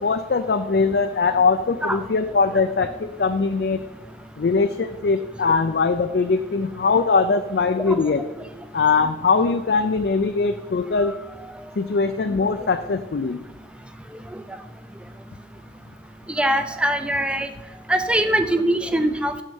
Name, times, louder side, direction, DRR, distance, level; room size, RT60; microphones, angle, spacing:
voice 1, 0.0-3.8 4.4-8.2 8.7-11.2 11.8-13.4, left 4 dB, 65° left, 7 dB, 0.4 m, -21 dB
voice 2, 16.3-17.5 17.9-19.4, right 1 dB, 5° right, 7 dB, 0.5 m, -22 dB
7.5 x 6.3 x 7.0 m, 1.1 s
head